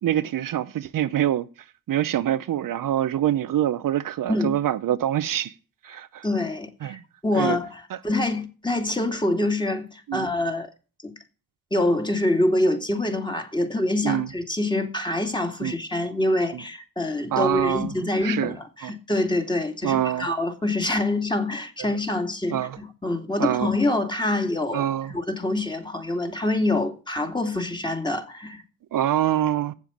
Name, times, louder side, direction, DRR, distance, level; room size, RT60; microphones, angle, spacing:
voice 1, 0.0-1.5 1.9-5.5 5.8-6.2 6.8-7.0 7.3-7.6 7.9-8.0 10.1-10.3 14.0-14.3 15.6-15.7 16.5-16.6 17.3-17.9 18.2-18.5 18.8-18.9 19.8-20.3 22.5-22.8 23.4-23.7 24.7-25.1 28.9-29.7, right 11 dB, 70° right, 0.7 m, -25 dB
voice 2, 6.2-10.7 11.0-11.1 11.7-28.6, left 2 dB, 15° left, 2.5 m, -25 dB
7.6 x 7.3 x 7.0 m
supercardioid pair, 50°, 34 cm